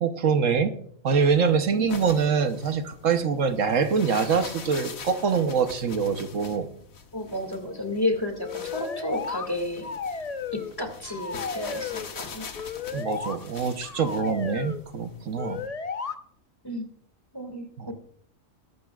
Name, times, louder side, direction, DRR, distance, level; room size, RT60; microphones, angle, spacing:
voice 1, 0.0-0.7 1.0-6.7 12.9-15.6 17.8-17.9, right 6 dB, 70° right, 7 dB, 1.2 m, -24 dB
sound 1, 1.1-15.7, left 5 dB, 90° left, 1.7 m, -44 dB
voice 2, 7.1-9.9 10.5-12.5 16.6-16.8 17.3-17.9, left 1 dB, 15° left, 4 dB, 2.0 m, -31 dB
sound 2, 8.4-9.5 9.8-10.8 11.0-12.1 12.5-13.4 13.8-14.8 15.4-16.1, left 5 dB, 35° left, 0.7 m, -34 dB
21.5 x 12.0 x 2.4 m, 0.63 s
omnidirectional pair, 1.4 m